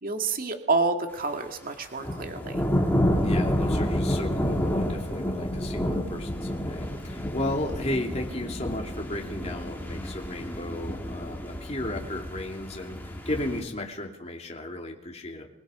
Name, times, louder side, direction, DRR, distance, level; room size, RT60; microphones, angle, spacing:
voice 1, 0.0-2.6, right 3 dB, 40° right, 4 dB, 2.3 m, -28 dB
sound 1, 2.0-13.6, equal, 10° left, 3.2 m, -29 dB
voice 2, 3.2-15.5, left 1 dB, 30° left, 1 dB, 2.9 m, -34 dB
27.0 x 21.5 x 5.1 m, 0.77 s
head